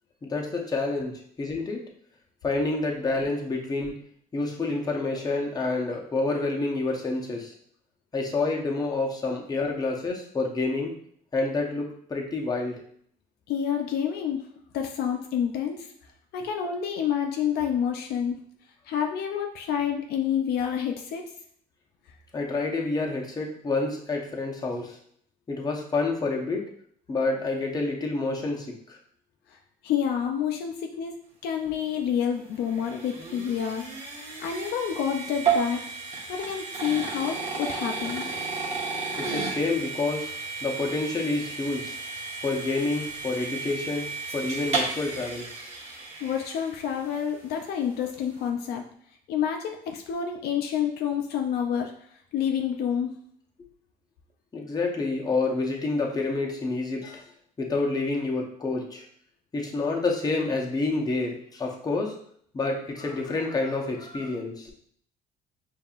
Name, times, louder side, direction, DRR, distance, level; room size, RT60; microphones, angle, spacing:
voice 1, 0.2-1.8 2.4-4.0 4.3-7.5 8.1-10.9 11.3-12.8 22.3-25.0 25.5-26.7 27.1-29.0 39.2-40.3 40.6-42.0 42.4-44.0 44.3-45.5 54.5-57.2 57.6-59.0 59.5-62.2 62.5-64.7, left 3 dB, 25° left, -1 dB, 0.8 m, -28 dB
voice 2, 13.5-14.5 14.7-15.9 16.3-18.4 18.9-21.2 29.8-31.2 31.4-33.9 34.4-35.8 36.3-38.3 46.2-48.8 49.3-51.9 52.3-53.2, left 8 dB, 70° left, 3 dB, 0.5 m, -28 dB
sound 1, 32.0-47.2, right 5 dB, 40° right, 1.2 m, -33 dB
5.3 x 2.7 x 2.4 m, 0.63 s
cardioid pair, 110°, 17 cm